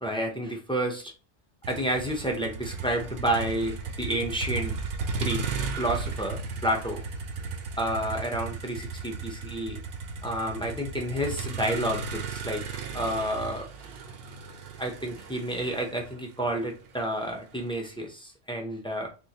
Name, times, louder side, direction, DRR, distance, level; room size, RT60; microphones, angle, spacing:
voice 1, 0.0-1.1 1.7-4.8 5.2-5.4 5.8-7.0 7.8-9.8 10.2-12.6 12.9-13.7 14.8-19.1, right 1 dB, 5° left, 1 dB, 0.4 m, -30 dB
Motor vehicle (road), 1.6-17.8, right 4 dB, 65° right, 0.7 m, -35 dB
3.5 x 2.4 x 2.9 m, 0.33 s
omnidirectional pair, 1.2 m